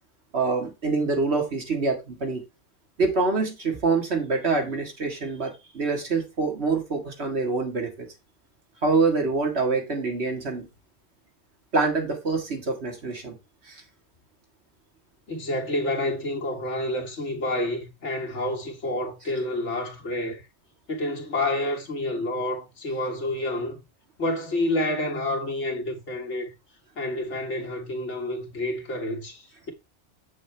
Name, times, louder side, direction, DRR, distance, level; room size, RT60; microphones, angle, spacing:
voice 1, 0.3-2.4 3.0-8.1 8.8-10.7 11.7-13.4 13.7-13.8, right 4 dB, 60° right, 2.1 m, -25 dB
voice 2, 15.3-20.5 20.9-23.8 24.2-26.5 27.0-29.7, left 1 dB, 75° left, 2.1 m, -29 dB
7.6 x 6.5 x 3.3 m
omnidirectional pair, 1.2 m